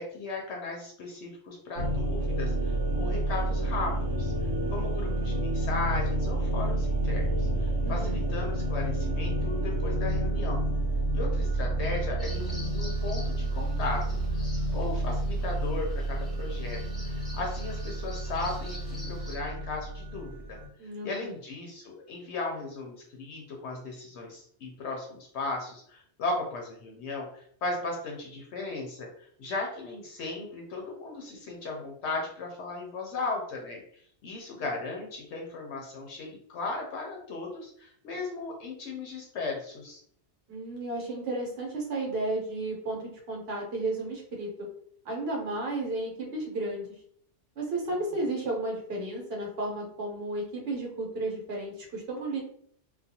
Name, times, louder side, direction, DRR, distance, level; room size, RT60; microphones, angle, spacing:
voice 1, 0.0-10.6 11.1-14.4 14.7-16.8 17.1-20.6 21.0-40.0, left 3 dB, 70° left, 0 dB, 0.8 m, -36 dB
sound 1, 1.8-20.7, right 1 dB, 80° right, 1.0 m, -29 dB
voice 2, 7.8-8.2 20.8-21.3 40.5-44.7 45.0-46.9 47.6-52.4, right 2 dB, 60° right, -1 dB, 1.0 m, -33 dB
Bird vocalization bird call bird song, 12.2-19.4, left 1 dB, ahead, 0.9 m, -48 dB
2.3 x 2.2 x 2.7 m, 0.64 s
omnidirectional pair, 1.2 m